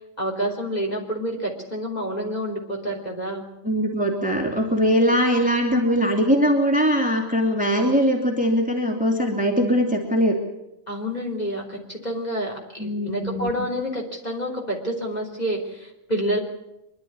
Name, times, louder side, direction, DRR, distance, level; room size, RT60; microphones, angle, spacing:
voice 1, 0.2-3.5 10.9-16.4, equal, 30° left, -1 dB, 3.5 m, -28 dB
voice 2, 3.6-10.4 12.8-13.7, equal, 5° right, 1 dB, 2.6 m, -21 dB
25.0 x 11.5 x 9.5 m, 0.91 s
omnidirectional pair, 1.5 m